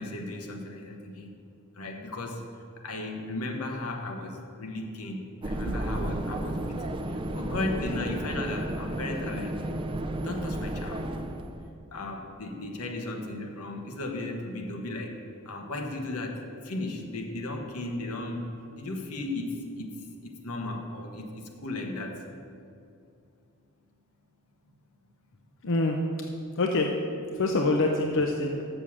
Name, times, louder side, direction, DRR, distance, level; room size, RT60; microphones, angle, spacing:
voice 1, 0.0-1.3 1.7-2.5 2.8-9.6 10.2-11.1 11.9-15.2 15.4-19.9 20.2-22.2, left 2 dB, 85° left, 2 dB, 1.1 m, -35 dB
sound 1, 5.4-11.7, right 1 dB, 25° right, 0.4 m, -33 dB
voice 2, 25.6-26.0 26.6-26.9 27.3-28.6, left 2 dB, 60° left, 2 dB, 0.6 m, -25 dB
6.8 x 6.2 x 7.2 m, 2.5 s
head